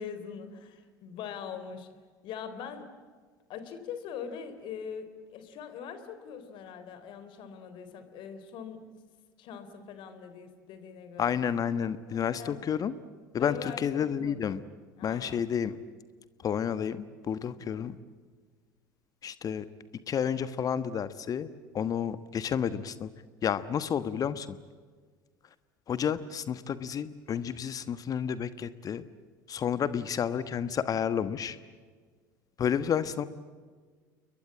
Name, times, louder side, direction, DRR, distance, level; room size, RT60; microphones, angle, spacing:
voice 1, 0.0-1.9 2.2-2.9 3.5-8.9 9.4-11.4 12.1-12.6 13.4-14.6 15.0-15.4 17.5-17.8, left 7 dB, 50° left, 10 dB, 3.5 m, -42 dB
voice 2, 11.2-13.0 13.3-14.6 15.0-15.8 16.4-18.0 19.2-19.7 20.1-21.5 21.7-23.1 23.4-24.6 25.9-29.0 29.5-31.6 32.6-33.3, left 8 dB, 35° left, 14 dB, 1.2 m, -30 dB
30.0 x 22.5 x 8.8 m, 1.6 s
figure-of-eight pair, 70°, 11 cm